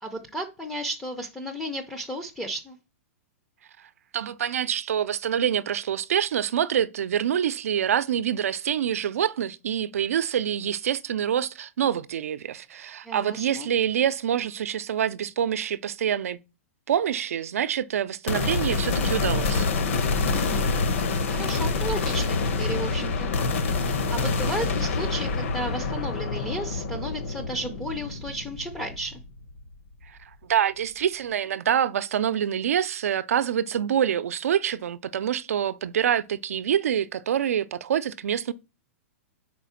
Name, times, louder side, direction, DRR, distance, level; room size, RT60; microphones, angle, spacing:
voice 1, 0.0-2.8 13.0-13.7 20.3-20.7 21.3-23.3 24.1-29.2, right 1 dB, 5° left, 0.5 m, -33 dB
voice 2, 4.1-16.4 16.9-19.7 30.4-38.5, right 9 dB, 75° right, 0.6 m, -26 dB
sound 1, 18.3-29.6, left 4 dB, 55° left, 1.0 m, -27 dB
5.1 x 4.5 x 5.6 m
hypercardioid pair, 175°, 8 cm